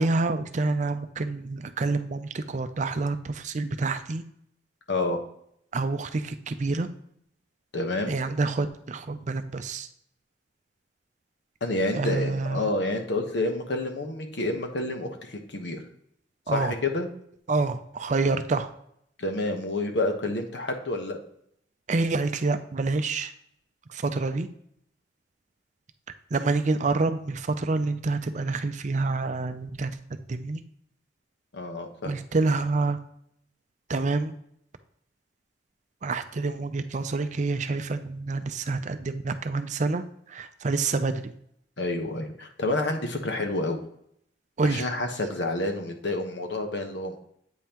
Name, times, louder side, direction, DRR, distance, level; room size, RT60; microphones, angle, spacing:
voice 1, 0.0-4.2 5.7-6.9 8.1-9.9 11.9-12.7 16.5-16.7 17.5-18.7 21.9-23.3 23.9-24.5 26.3-30.0 30.3-30.6 32.0-33.0 33.9-34.4 36.0-40.0 40.3-41.3 44.6-44.9, right 3 dB, 40° right, 10 dB, 0.5 m, -27 dB
voice 2, 4.9-5.2 7.7-8.2 11.6-15.8 16.5-17.1 19.2-21.2 31.5-32.1 41.8-43.8 44.6-47.2, left 2 dB, 70° left, 4 dB, 1.1 m, -29 dB
8.4 x 5.4 x 2.9 m, 0.71 s
head